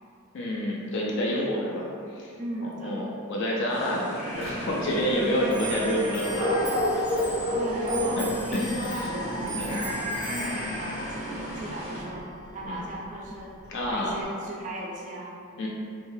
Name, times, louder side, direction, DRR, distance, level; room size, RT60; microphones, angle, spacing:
voice 1, 0.3-1.8 2.1-2.3 2.6-6.7 8.2-8.3 8.5-9.1 9.5-9.8 12.7-12.8 13.7-14.2 15.6-15.7, equal, 55° left, -3 dB, 0.3 m, -28 dB
voice 2, 2.4-3.0 7.5-12.3 12.5-13.5 13.8-15.4, right 1 dB, 35° right, -3 dB, 0.4 m, -36 dB
sound 1, 3.7-12.0, equal, 85° left, 1.1 m, -31 dB
Clock, 4.4-14.2, right 2 dB, 25° left, 1.0 m, -41 dB
3.2 x 2.1 x 2.6 m, 2.5 s
head